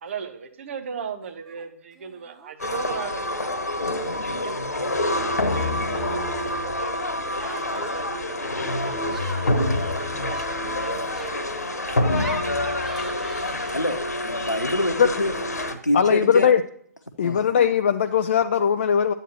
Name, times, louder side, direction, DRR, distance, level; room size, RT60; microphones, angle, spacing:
voice 1, 0.0-3.4 3.7-8.5 9.4-12.4, right 7 dB, 45° right, 8 dB, 1.1 m, -38 dB
Laughter, 1.2-1.6 1.9-2.5 2.9-3.8 5.1-6.6 7.3-14.2, right 1 dB, 5° right, 0.7 m, -43 dB
sound 1, 2.6-15.7, left 1 dB, 70° left, 1.2 m, -27 dB
voice 2, 13.7-15.3 15.7-16.5 17.2-17.4, left 1 dB, 85° left, 7 dB, 1.1 m, -26 dB
voice 3, 15.9-16.6 17.2-19.1, left 7 dB, 40° left, 8 dB, 0.4 m, -19 dB
11.0 x 8.9 x 3.0 m, 0.63 s
figure-of-eight pair, 130°, 9 cm